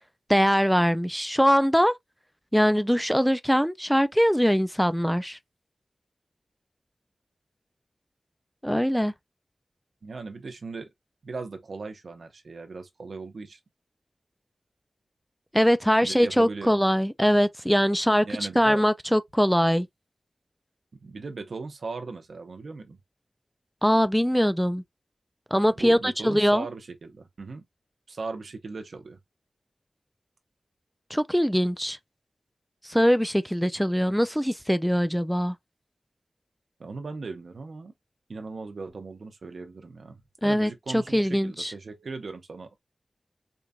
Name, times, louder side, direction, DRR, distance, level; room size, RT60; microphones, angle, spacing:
voice 1, 0.3-1.9 2.5-5.4 8.6-9.1 15.5-18.3 18.6-19.9 23.8-24.8 25.5-26.7 31.1-32.0 32.8-35.5 40.4-41.7, equal, ahead, 0.4 m, -22 dB
voice 2, 10.0-10.9 11.2-13.6 16.0-16.7 18.2-18.8 21.0-23.0 25.8-27.6 28.1-29.2 36.8-37.9 38.3-42.8, right 4 dB, 80° right, 0.8 m, -38 dB
4.5 x 2.5 x 2.2 m
cardioid pair, 50°, 0 cm